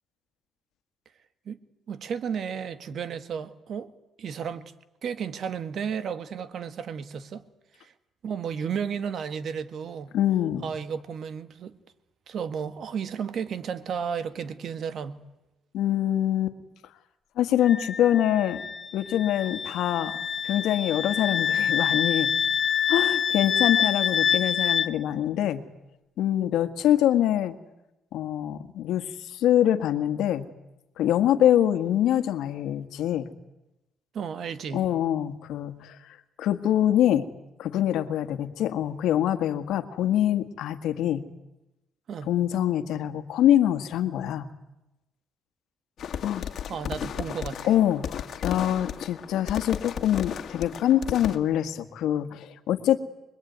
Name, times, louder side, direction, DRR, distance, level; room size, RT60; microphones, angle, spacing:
voice 1, 1.9-3.9 4.2-4.7 5.0-7.4 7.8-7.9 8.2-10.1 10.6-11.8 12.3-15.2 34.1-34.9 42.1-42.3 46.7-47.8, right 7 dB, 65° right, 1.8 m, -33 dB
voice 2, 10.1-10.7 15.7-16.6 17.4-18.6 18.9-20.1 20.4-22.3 22.9-25.6 26.2-27.5 28.1-29.0 29.3-30.5 31.0-33.3 34.7-36.0 36.4-37.3 37.6-41.2 42.3-44.5 46.2-46.5 47.6-53.0, left 11 dB, 85° left, 1.7 m, -24 dB
Wind instrument woodwind instrument, 17.6-24.9, left 7 dB, 45° left, 1.4 m, -26 dB
sound 1, 46.0-51.4, left 8 dB, 65° left, 2.0 m, -34 dB
25.5 x 21.5 x 9.4 m
cardioid pair, 90°, 0 cm